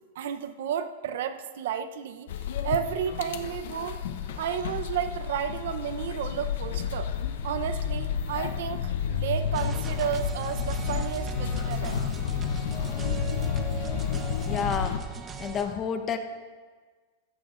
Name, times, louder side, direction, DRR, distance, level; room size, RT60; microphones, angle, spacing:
voice 1, 0.1-2.3 2.6-4.0 4.4-7.1 7.4-12.1, right 9 dB, 70° right, 9 dB, 0.7 m, -32 dB
sound 1, 2.3-15.0, left 7 dB, 70° left, 0.8 m, -31 dB
sound 2, 9.5-15.7, right 4 dB, 20° right, 0.9 m, -38 dB
voice 2, 14.5-14.9 15.4-16.2, left 7 dB, 25° left, 6 dB, 0.9 m, -29 dB
14.5 x 14.5 x 2.5 m, 1.4 s
supercardioid pair, 150°, 0 cm